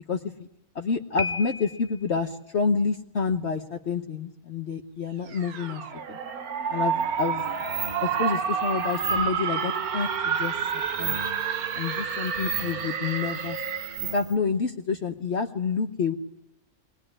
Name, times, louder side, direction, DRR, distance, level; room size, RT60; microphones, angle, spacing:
voice 1, 0.1-0.5 0.7-5.8 6.1-6.2 6.7-7.4 8.0-10.6 11.0-11.2 11.7-13.6 14.1-16.1, left 5 dB, 50° left, 4 dB, 1.3 m, -28 dB
Piano, 1.2-2.1, left 2 dB, 5° right, 1.2 m, -33 dB
sound 1, 5.3-14.1, right 6 dB, 85° right, 1.6 m, -29 dB
sound 2, 7.0-14.4, right 6 dB, 40° right, 2.1 m, -38 dB
22.0 x 20.5 x 10.0 m, 0.86 s
omnidirectional pair, 1.5 m